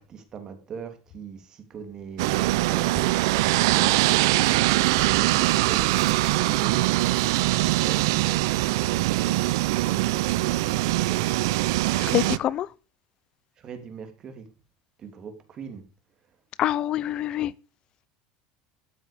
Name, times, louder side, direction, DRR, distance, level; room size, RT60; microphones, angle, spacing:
voice 1, 0.0-3.2 5.2-9.5 13.6-14.5 15.0-15.9, right 6 dB, 30° right, 2.9 m, -41 dB
sound 1, 1.7-12.7, right 4 dB, 15° right, 3.1 m, -48 dB
sound 2, 2.2-12.4, right 18 dB, 85° right, 0.6 m, -22 dB
voice 2, 11.9-12.7 16.6-17.5, left 12 dB, 40° left, 0.7 m, -26 dB
13.0 x 9.0 x 5.1 m
cardioid pair, 145°, 2 cm